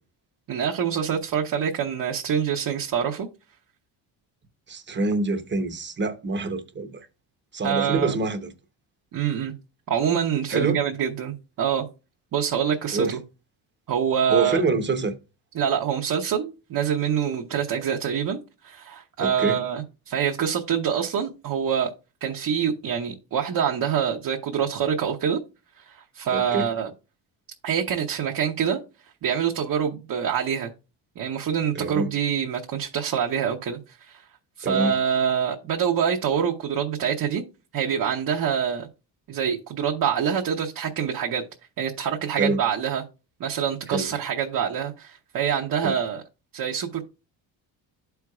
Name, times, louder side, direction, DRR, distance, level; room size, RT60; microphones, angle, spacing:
voice 1, 0.5-3.3 7.6-8.2 9.1-9.5 9.9-11.8 12.3-13.2 13.9-14.6 15.5-18.4 18.6-21.9 22.2-25.4 25.8-26.9 27.6-28.8 29.2-30.7 31.2-34.2 34.6-37.4 37.7-38.9 39.3-41.4 41.8-43.0 43.4-46.2 46.5-47.0, right 8 dB, 55° right, 1.0 m, -25 dB
voice 2, 4.7-7.0 7.5-8.5 10.5-10.8 12.9-13.1 14.3-15.1 19.2-19.6 26.3-26.7 31.7-32.1 34.6-34.9 42.3-42.6 43.9-44.1 45.8-46.0, right 3 dB, 25° right, 0.9 m, -26 dB
12.5 x 4.6 x 2.4 m
cardioid pair, 120°, 42 cm